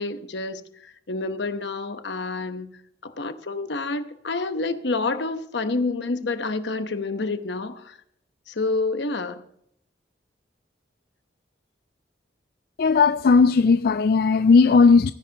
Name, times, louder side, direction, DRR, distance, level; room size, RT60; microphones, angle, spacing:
voice 1, 0.0-2.7 3.0-8.0 8.5-9.4, left 3 dB, 75° left, 1.0 m, -28 dB
voice 2, 12.8-15.1, left 4 dB, 55° left, 0.3 m, -16 dB
18.0 x 10.5 x 2.9 m
head